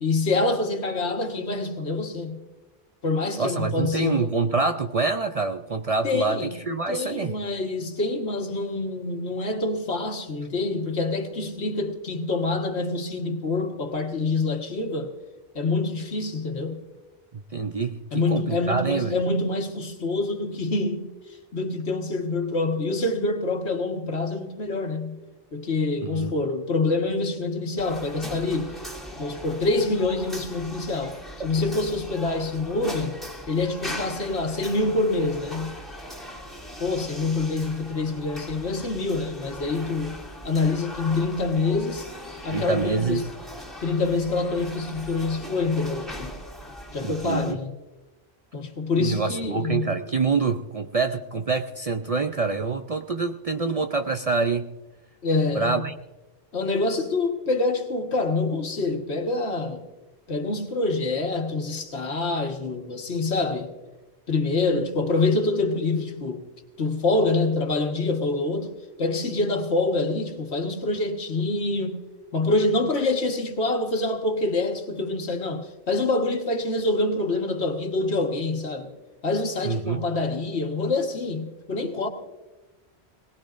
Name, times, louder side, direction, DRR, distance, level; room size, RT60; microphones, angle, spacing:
voice 1, 0.0-2.4 3.0-4.3 6.0-6.6 6.9-15.1 15.6-16.8 18.1-21.1 21.5-25.2 25.5-28.8 29.2-33.2 33.5-35.8 36.8-42.1 42.4-43.2 43.8-46.3 46.9-47.7 48.5-50.0 55.2-55.8 56.5-59.9 60.3-63.7 64.3-66.4 66.8-72.0 72.3-78.9 79.2-82.1, left 3 dB, 80° left, 1.8 m, -26 dB
voice 2, 3.4-7.3 17.5-19.2 26.1-26.3 31.4-31.5 42.5-43.2 47.0-47.6 49.0-54.7 55.5-55.9 79.6-80.0, right 4 dB, 45° right, 0.5 m, -26 dB
sound 1, 27.8-47.5, left 1 dB, ahead, 2.5 m, -40 dB
21.5 x 18.5 x 2.5 m
omnidirectional pair, 1.1 m